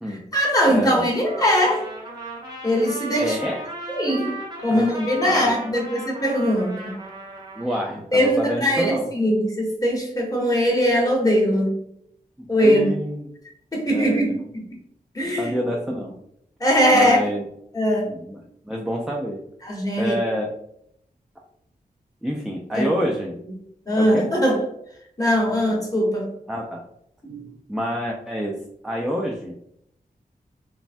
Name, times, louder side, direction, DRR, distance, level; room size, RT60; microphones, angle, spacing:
voice 1, 0.1-1.9 2.6-3.4 3.9-4.3 4.6-7.0 8.1-11.7 12.5-12.9 13.7-14.6 15.1-15.5 16.6-17.2 17.7-18.1 19.6-20.2 22.7-22.9 23.9-24.6 25.2-26.3 27.2-27.5, equal, 25° left, -2 dB, 1.0 m, -21 dB
voice 2, 0.7-1.1 3.2-3.6 4.7-4.9 5.2-5.7 7.6-9.1 12.4-13.3 13.9-14.3 15.4-16.2 16.9-17.4 18.1-19.4 20.0-20.5 22.2-23.4 24.0-24.3 25.5-25.6 26.5-26.8 27.7-28.6 28.8-29.5, equal, 5° right, -2 dB, 0.3 m, -27 dB
Trumpet, 1.1-7.7, right 2 dB, 30° right, 0.7 m, -37 dB
3.2 x 2.1 x 2.5 m, 0.72 s
wide cardioid pair, 105°, 16 cm